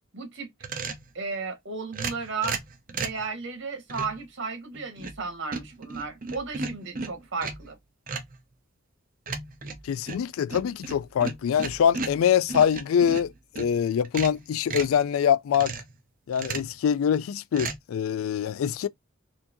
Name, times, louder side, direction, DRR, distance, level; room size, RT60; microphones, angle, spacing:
voice 1, 0.1-0.5 1.1-2.6 2.9-7.8, right 4 dB, 65° right, 1.6 m, -34 dB
sound 1, 0.6-1.1 1.9-3.3 3.9-4.2 4.7-5.2 5.5-7.7 8.1-8.4 9.3-13.7 14.0-15.0 15.5-16.0 16.3-16.8 17.5-17.8, right 4 dB, 45° right, 0.8 m, -35 dB
voice 2, 9.8-15.7 16.3-18.9, left 8 dB, 80° left, 0.3 m, -24 dB
4.3 x 2.9 x 2.6 m
head